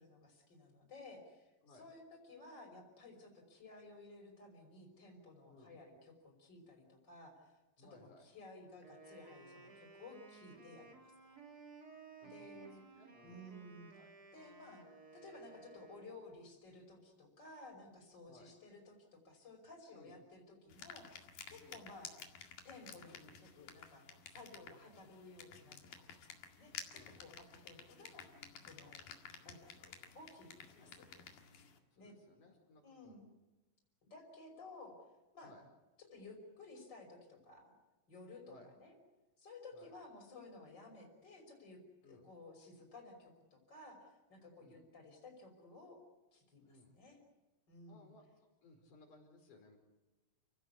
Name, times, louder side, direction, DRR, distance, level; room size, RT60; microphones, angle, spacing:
voice 1, 0.0-11.4 12.2-12.9 13.2-14.8 15.1-22.1 22.6-26.1 26.6-28.3 28.6-29.0 29.4-31.1 32.0-32.2 32.8-33.3 34.0-35.0 35.3-35.5 36.0-37.7 38.1-39.0 39.4-46.0 46.3-47.2 47.7-48.1, left 2 dB, 30° left, 3 dB, 5.9 m, -56 dB
voice 2, 7.8-8.2 12.2-12.7 13.0-13.4 14.0-14.1 18.3-18.5 19.9-20.2 21.6-21.8 26.9-27.2 30.7-31.0 31.9-33.2 35.4-35.6 38.5-38.7 39.7-39.9 42.0-42.3 44.6-44.8 46.6-46.9 47.9-48.2 48.6-49.8, left 2 dB, 60° left, 3 dB, 6.4 m, -62 dB
Wind instrument woodwind instrument, 8.8-16.4, right 4 dB, 30° right, 3.0 m, -57 dB
sound 1, 20.7-31.8, left 7 dB, 75° left, 3.8 m, -53 dB
29.5 x 17.0 x 8.4 m, 1.1 s
omnidirectional pair, 4.1 m